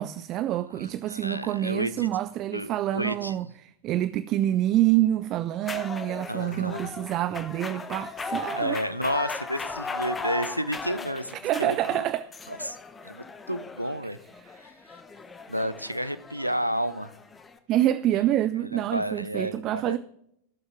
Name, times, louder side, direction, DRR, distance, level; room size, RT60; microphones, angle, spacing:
voice 1, 0.0-8.8 11.4-12.3 14.4-14.5 17.7-20.0, right 13 dB, 35° right, 0.4 m, -27 dB
voice 2, 0.8-2.1 2.5-3.4 6.3-6.9 8.5-12.1 12.5-12.8 13.0-14.2 14.6-15.0 15.5-17.1 18.7-20.0, equal, 90° right, 0.6 m, -31 dB
sound 1, 5.6-17.6, left 3 dB, 15° left, 1.0 m, -37 dB
16.5 x 7.1 x 3.5 m
figure-of-eight pair, 90°, 0 cm